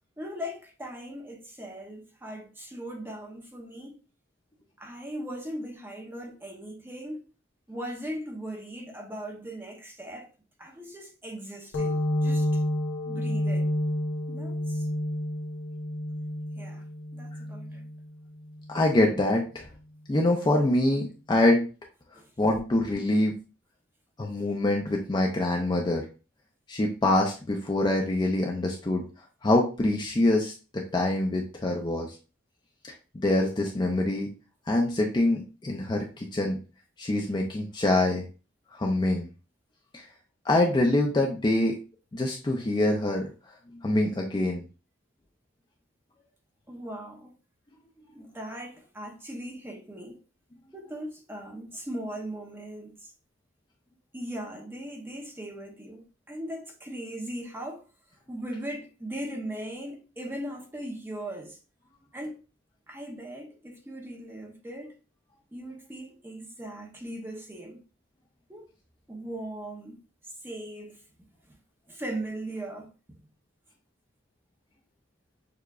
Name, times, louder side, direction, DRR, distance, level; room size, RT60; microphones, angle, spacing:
voice 1, 0.2-4.0 4.8-7.3 7.7-10.3 10.6-12.6 13.0-13.7 14.3-14.9 16.6-16.8 17.1-17.9 22.1-22.3 46.7-47.3 48.1-50.2 50.7-53.1 54.1-57.8 58.3-61.6 62.1-62.4 62.9-65.0 65.5-67.8 68.5-68.7 69.1-71.0 71.9-72.9, right 1 dB, 10° right, 0.7 m, -39 dB
sound 1, 11.7-19.0, left 1 dB, 70° left, 0.9 m, -30 dB
voice 2, 18.7-19.6 20.1-21.7 22.4-23.4 24.2-26.1 26.7-29.0 29.4-32.1 33.1-34.3 34.7-36.6 37.0-38.2 38.7-39.3 40.5-41.8 42.1-43.3 43.8-44.6, left 1 dB, 20° left, 0.4 m, -25 dB
6.5 x 2.3 x 2.3 m
head